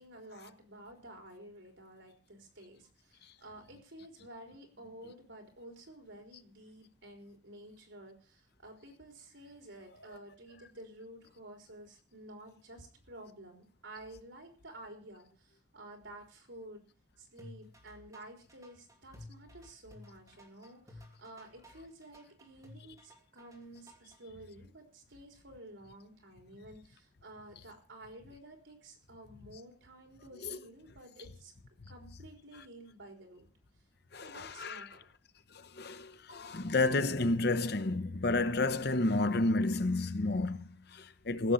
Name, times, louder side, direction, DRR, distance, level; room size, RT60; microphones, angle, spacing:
voice 1, 0.0-16.9 17.2-31.5 31.9-33.5 34.2-35.1, right 1 dB, 80° right, 3.9 m, -52 dB
sound 1, 17.4-24.2, left 1 dB, 20° right, 2.8 m, -55 dB
voice 2, 34.1-34.8 35.8-41.5, left 2 dB, 55° left, 0.8 m, -31 dB
15.5 x 7.0 x 7.7 m
head